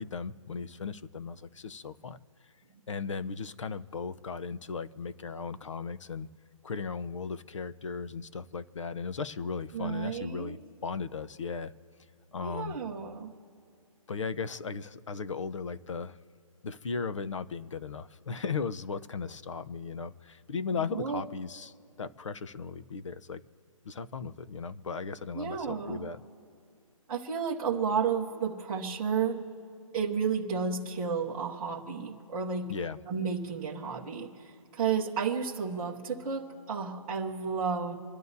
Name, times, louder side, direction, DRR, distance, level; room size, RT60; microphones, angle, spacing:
voice 1, 0.0-2.2 2.9-6.3 6.6-11.7 12.3-12.8 14.1-16.2 16.6-23.4 23.8-26.2 32.7-33.0, left 5 dB, 60° left, 12 dB, 0.8 m, -36 dB
voice 2, 9.7-10.6 12.4-13.3 20.7-21.2 25.3-26.1 27.1-29.4 29.9-32.7 33.1-37.9, right 6 dB, 10° right, -6 dB, 0.8 m, -32 dB
27.0 x 11.5 x 2.7 m, 2.3 s
hypercardioid pair, 175°, 18 cm